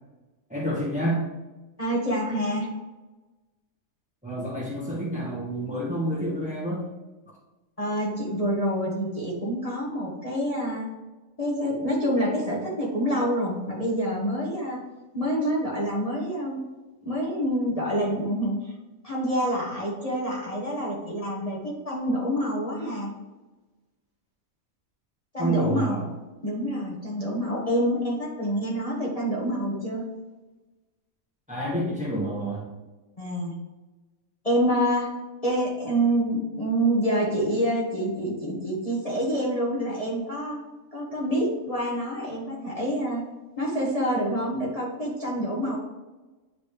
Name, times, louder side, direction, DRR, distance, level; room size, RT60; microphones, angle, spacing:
voice 1, 0.5-1.3 4.2-6.9 25.4-26.0 31.5-32.7, right 1 dB, 5° right, -4 dB, 1.3 m, -28 dB
voice 2, 1.8-2.7 7.8-10.8 11.4-14.8 15.1-16.6 17.0-18.7 19.0-23.1 25.3-26.0 26.4-30.0 33.2-33.6 34.4-35.1 35.4-40.6 40.9-43.2 43.6-45.8, equal, 25° left, -5 dB, 1.5 m, -27 dB
9.9 x 4.2 x 3.3 m, 1.1 s
omnidirectional pair, 1.5 m